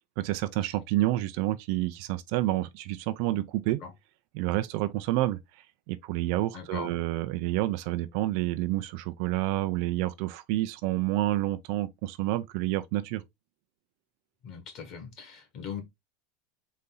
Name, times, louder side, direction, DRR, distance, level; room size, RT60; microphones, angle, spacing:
voice 1, 0.2-3.8 4.3-5.4 5.9-13.2, right 16 dB, 60° right, 0.5 m, -29 dB
voice 2, 6.5-6.9 14.4-15.8, left 6 dB, 45° left, 1.7 m, -39 dB
4.1 x 2.7 x 3.8 m
supercardioid pair, 135°, 0 cm